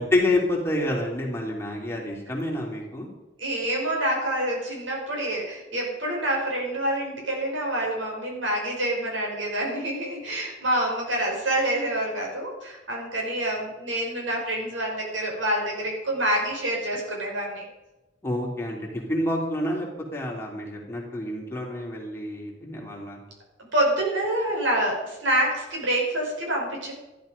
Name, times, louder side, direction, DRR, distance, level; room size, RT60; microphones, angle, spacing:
voice 1, 0.0-3.1 18.2-23.2, left 1 dB, 15° left, -2 dB, 3.5 m, -28 dB
voice 2, 3.4-17.6 23.7-26.9, right 1 dB, 85° right, -1 dB, 6.2 m, -27 dB
13.5 x 13.0 x 5.4 m, 1.0 s
head